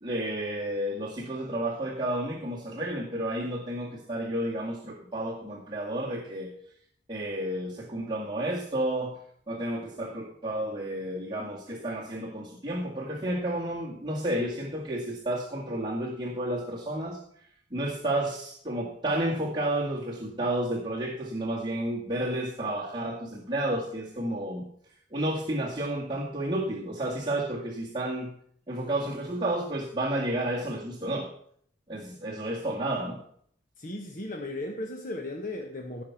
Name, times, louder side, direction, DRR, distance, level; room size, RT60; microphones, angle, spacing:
voice 1, 0.0-6.5 7.1-9.2 9.5-17.2 17.7-24.7 25.1-28.3 28.7-31.3 31.9-33.2, right 1 dB, 30° right, -5 dB, 2.0 m, -31 dB
voice 2, 33.8-36.0, left 1 dB, 50° left, 2 dB, 1.3 m, -36 dB
17.0 x 5.9 x 5.9 m, 0.64 s
head